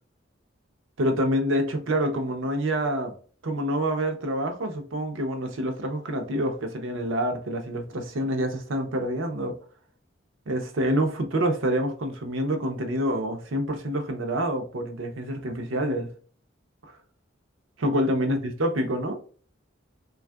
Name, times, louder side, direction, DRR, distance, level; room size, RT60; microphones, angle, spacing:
voice 1, 1.0-3.1 3.4-9.6 10.5-16.1 16.8-17.0 17.8-19.2, equal, 80° right, 0.6 m, -27 dB
3.3 x 2.4 x 2.2 m
head